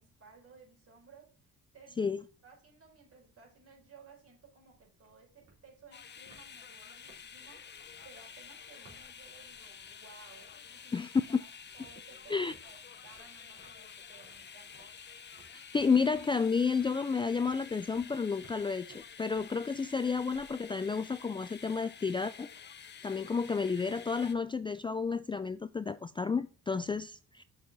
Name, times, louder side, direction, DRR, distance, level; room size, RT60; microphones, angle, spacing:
voice 1, 0.0-1.4 1.7-2.1 2.4-15.0, right 5 dB, 50° right, 4.2 m, -58 dB
sound 1, 1.9-2.6 2.9-3.0 3.2-10.6 10.9-20.7, right 3 dB, 75° right, 3.9 m, -63 dB
sound 2, 5.9-24.3, left 7 dB, 35° left, 0.7 m, -50 dB
voice 2, 10.9-11.4 12.3-12.5 15.7-22.5 23.0-27.4, left 5 dB, 15° left, 0.3 m, -31 dB
6.5 x 5.5 x 4.0 m
cardioid pair, 90°, 30 cm